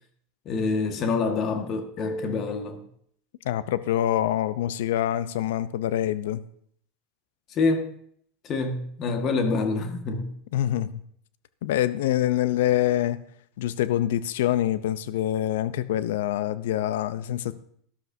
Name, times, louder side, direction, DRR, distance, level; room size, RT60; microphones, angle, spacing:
voice 1, 0.4-2.8 7.5-7.9 8.4-10.3, left 4 dB, 45° left, 5 dB, 1.6 m, -26 dB
voice 2, 3.4-6.4 10.5-11.0 11.6-13.2 13.6-17.5, left 12 dB, 80° left, 15 dB, 0.6 m, -25 dB
13.0 x 11.5 x 2.7 m, 0.64 s
hypercardioid pair, 100°, 0 cm